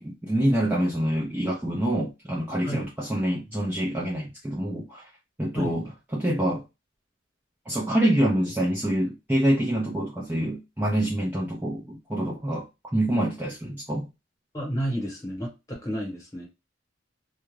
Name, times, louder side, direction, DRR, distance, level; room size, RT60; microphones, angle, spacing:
voice 1, 0.0-5.1 5.4-6.6 7.7-12.7 12.9-14.1, right 1 dB, 10° right, 0.5 m, -26 dB
voice 2, 14.5-16.5, equal, 15° left, 1.1 m, -31 dB
2.4 x 2.2 x 3.1 m
head